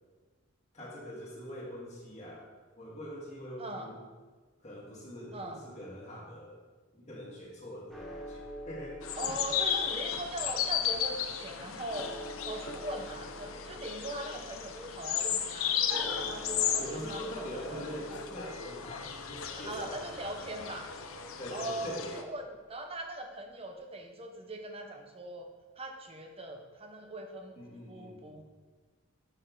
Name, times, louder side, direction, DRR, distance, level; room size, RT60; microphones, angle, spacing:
voice 1, 0.7-2.5 2.8-4.0 4.6-6.6 6.9-8.9 16.8-20.4 21.4-22.2 27.6-28.3, equal, 35° left, -5 dB, 2.0 m, -43 dB
sound 1, 7.9-22.1, equal, ahead, 1.1 m, -48 dB
sound 2, 9.0-22.2, left 8 dB, 75° left, 0.6 m, -35 dB
voice 2, 9.2-12.1 12.4-18.2 19.5-20.9 21.5-25.5 25.8-27.6 27.9-28.4, right 1 dB, 30° right, 4 dB, 0.8 m, -41 dB
6.8 x 6.6 x 3.9 m, 1.4 s
head